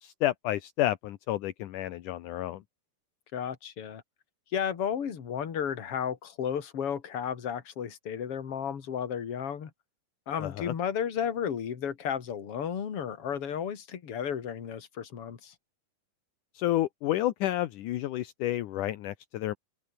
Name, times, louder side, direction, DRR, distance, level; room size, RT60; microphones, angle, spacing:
voice 1, 0.0-2.6 10.4-10.7 16.6-19.5, left 14 dB, 70° left, 2.0 m, -30 dB
voice 2, 3.3-4.0 4.5-9.7 10.3-15.5, left 8 dB, 40° left, 2.8 m, -33 dB
omnidirectional pair, 4.8 m